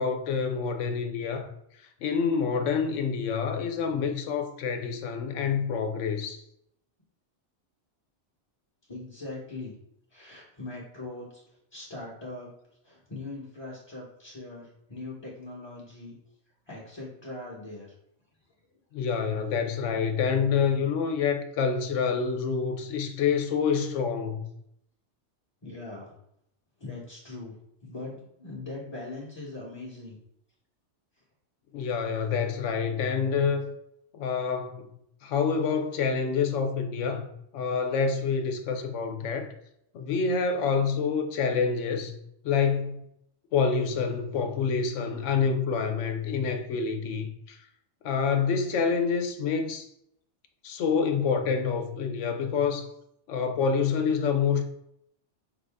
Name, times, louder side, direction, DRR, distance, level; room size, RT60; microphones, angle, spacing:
voice 1, 0.0-1.5 2.0-6.4 18.9-24.4 31.7-33.7 34.1-34.9 35.2-37.3 37.5-39.5 39.9-42.1 42.4-43.0 43.5-47.6 48.0-49.9 50.6-52.9 53.3-54.6, left 6 dB, 85° left, 1.0 m, -27 dB
voice 2, 8.9-9.7 10.1-12.5 12.8-16.2 16.7-17.9 18.5-18.6 25.6-26.1 26.8-30.2, left 2 dB, 25° left, 0.9 m, -41 dB
5.3 x 2.6 x 3.4 m
omnidirectional pair, 1.2 m